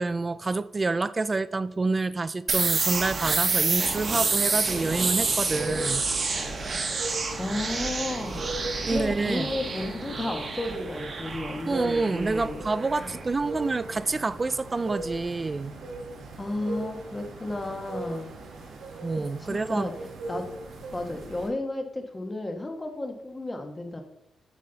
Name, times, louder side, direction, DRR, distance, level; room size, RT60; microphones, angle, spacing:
voice 1, 0.0-6.1 8.9-9.5 11.7-15.8 19.0-19.9, right 3 dB, 25° right, 0.4 m, -28 dB
sound 1, 2.5-14.1, right 4 dB, 45° right, 1.4 m, -29 dB
sound 2, 4.8-21.5, right 2 dB, 85° right, 2.1 m, -39 dB
voice 2, 6.6-7.0 7.3-13.2 16.4-18.3 19.4-20.5 20.9-24.0, left 2 dB, 20° left, 1.4 m, -33 dB
9.2 x 7.5 x 4.0 m
cardioid pair, 115°, 0 cm